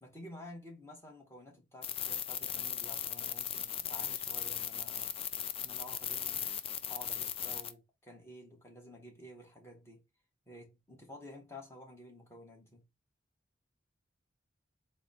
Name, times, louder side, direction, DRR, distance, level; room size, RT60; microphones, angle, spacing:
voice 1, 0.0-5.1 5.6-6.6 6.9-10.0 10.5-12.8, left 1 dB, 15° left, 1.2 m, -51 dB
sound 1, 1.8-7.7, left 9 dB, 30° left, 0.3 m, -37 dB
3.9 x 2.1 x 4.0 m
head